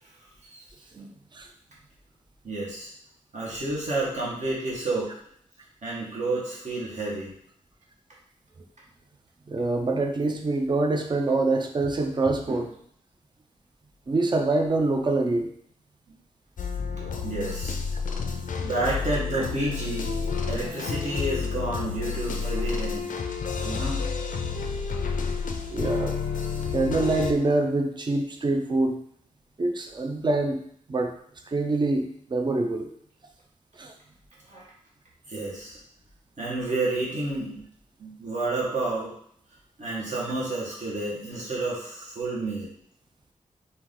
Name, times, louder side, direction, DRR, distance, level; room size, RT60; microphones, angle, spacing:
voice 1, 2.4-2.9 3.3-5.1 5.8-7.3 12.5-12.6 17.2-17.8 18.6-20.1 20.5-23.2 23.6-24.0 34.5-34.6 35.3-35.8 36.4-37.6 38.0-39.1 39.8-42.7, right 2 dB, 60° right, -6 dB, 1.4 m, -30 dB
voice 2, 9.5-12.7 14.1-15.5 19.3-19.4 25.7-26.2 26.7-29.0 29.6-30.6 30.9-31.1 31.5-32.1 32.3-32.9 33.8-33.9, right 2 dB, 35° right, 4 dB, 0.5 m, -25 dB
sound 1, 16.6-27.3, left 5 dB, 80° left, 0.5 m, -30 dB
4.5 x 2.6 x 3.7 m, 0.65 s
wide cardioid pair, 135°, 14 cm